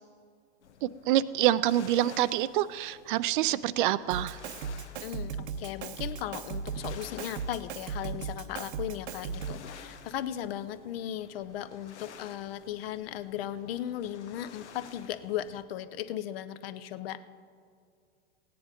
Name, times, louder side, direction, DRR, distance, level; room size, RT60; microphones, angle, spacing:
sound 1, 0.6-15.6, left 7 dB, 80° left, 1.1 m, -52 dB
voice 1, 0.8-4.4, right 13 dB, 50° right, 16 dB, 0.4 m, -26 dB
Drum kit, 4.1-9.7, right 6 dB, 70° right, 0.9 m, -37 dB
voice 2, 5.0-17.2, left 11 dB, 60° left, 13 dB, 0.7 m, -37 dB
16.0 x 9.6 x 5.1 m, 2.2 s
hypercardioid pair, 120°, 34 cm